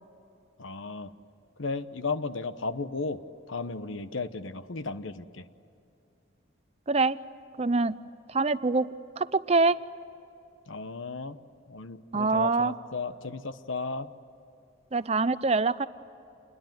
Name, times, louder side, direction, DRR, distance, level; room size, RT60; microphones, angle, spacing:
voice 1, 0.6-1.1 1.6-3.2 3.5-5.5 10.7-11.4 11.7-14.1, left 3 dB, 75° left, 12 dB, 1.1 m, -34 dB
voice 2, 7.6-7.9 8.3-8.9 9.2-9.8 12.1-12.7 14.9-15.9, right 3 dB, 30° right, 14 dB, 0.6 m, -24 dB
28.5 x 21.5 x 9.2 m, 2.8 s
head